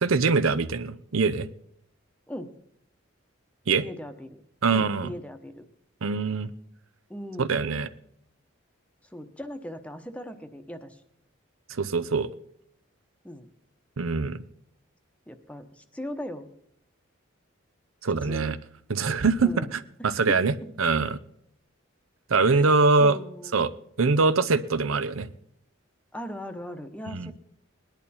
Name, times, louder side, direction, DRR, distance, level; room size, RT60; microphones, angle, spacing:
voice 1, 0.0-1.5 3.7-3.8 4.6-5.1 6.0-6.5 7.4-7.9 11.8-12.3 14.0-14.4 18.0-18.6 18.9-21.2 22.3-23.2 23.5-23.7 24.0-25.3 27.1-27.3, right 4 dB, 85° right, 13 dB, 0.7 m, -23 dB
voice 2, 3.8-4.4 4.7-5.7 7.1-7.5 9.1-11.0 13.2-13.5 15.3-16.5 18.2-18.6 19.4-19.7 20.0-20.4 22.4-22.6 23.0-23.6 26.1-27.3, equal, 5° left, 7 dB, 0.8 m, -39 dB
19.5 x 10.5 x 4.3 m, 0.69 s
head